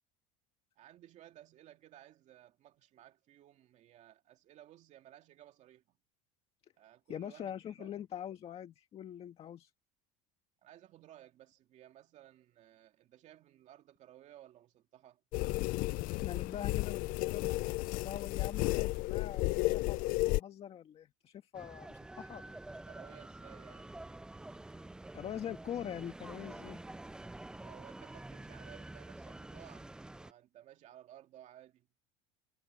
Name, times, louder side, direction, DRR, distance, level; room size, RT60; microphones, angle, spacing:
voice 1, 0.8-5.8 6.8-7.5 7.8-7.9 10.6-15.2 22.9-24.0 25.0-25.2 27.5-29.9 30.2-31.9, right 12 dB, 45° right, 2.4 m, -57 dB
voice 2, 7.1-9.7 16.1-22.6 24.7-24.9 25.1-26.8, left 10 dB, 35° left, 1.8 m, -44 dB
sound 1, 15.3-20.4, left 20 dB, 55° left, 0.5 m, -33 dB
sound 2, 21.5-30.3, right 2 dB, 5° right, 0.3 m, -48 dB
cardioid pair, 135°, 17 cm